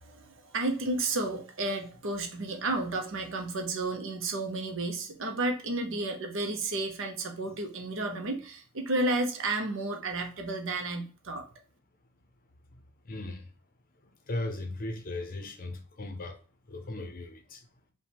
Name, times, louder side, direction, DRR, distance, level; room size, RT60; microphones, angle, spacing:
voice 1, 0.0-11.4, right 2 dB, 60° right, 0.7 m, -32 dB
voice 2, 13.1-13.4 14.3-16.3 16.7-17.6, left 2 dB, 40° left, 0.6 m, -37 dB
5.3 x 2.2 x 3.3 m
head